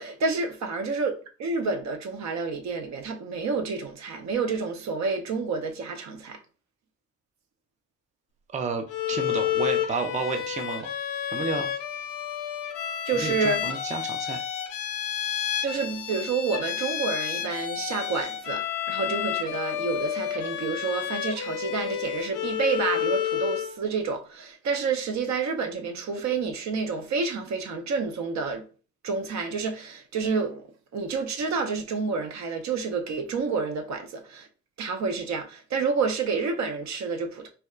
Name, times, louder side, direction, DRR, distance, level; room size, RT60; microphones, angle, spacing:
voice 1, 0.0-6.4 13.1-13.6 15.6-28.6 29.0-30.6 30.9-34.5 34.8-37.5, right 4 dB, 65° right, 0.7 m, -29 dB
voice 2, 8.5-10.9 11.3-11.7 13.2-14.4, right 5 dB, 25° right, 0.5 m, -31 dB
Bowed string instrument, 8.9-23.8, left 10 dB, 85° left, 0.6 m, -30 dB
4.2 x 2.2 x 2.4 m
cardioid pair, 90°, 30 cm